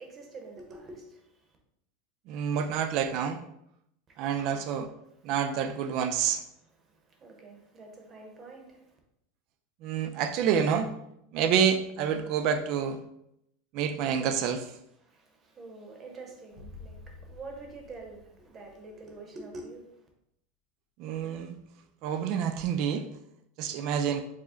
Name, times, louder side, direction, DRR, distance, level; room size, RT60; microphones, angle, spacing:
voice 1, 0.0-1.6 4.1-4.8 5.1-5.7 6.5-9.0 15.0-20.1, right 3 dB, 20° right, 0.7 m, -47 dB
voice 2, 2.3-3.4 4.2-4.9 5.2-6.4 9.8-10.9 11.3-13.0 13.7-14.7 21.0-21.5 22.0-23.1 23.6-24.2, right 7 dB, 45° right, 0.4 m, -28 dB
sound 1, 16.5-19.1, left 3 dB, 40° left, 1.3 m, -49 dB
4.8 x 2.1 x 3.7 m
supercardioid pair, 165°, 0 cm